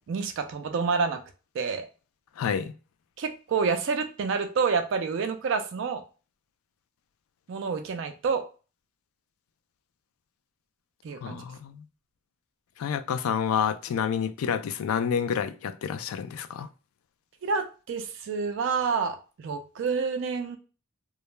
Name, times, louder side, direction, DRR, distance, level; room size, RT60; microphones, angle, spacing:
voice 1, 0.1-1.2 1.5-1.9 3.2-6.0 7.5-8.5 11.0-11.4 17.4-20.6, right 5 dB, 60° right, 0.3 m, -28 dB
voice 2, 2.4-2.7 11.2-11.8 12.8-16.7, left 7 dB, 90° left, 0.3 m, -29 dB
2.3 x 2.1 x 3.0 m
head